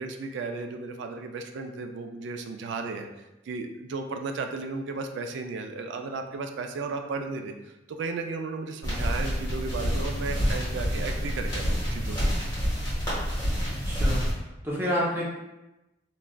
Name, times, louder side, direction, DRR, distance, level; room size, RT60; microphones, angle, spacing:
voice 1, 0.0-3.1 3.5-12.4, right 4 dB, 65° right, 5 dB, 0.3 m, -34 dB
sound 1, 8.8-14.3, equal, 20° left, 1.2 m, -28 dB
voice 2, 13.6-14.3 14.6-15.2, equal, 10° right, -6 dB, 0.6 m, -29 dB
3.1 x 2.4 x 2.2 m, 1.0 s
head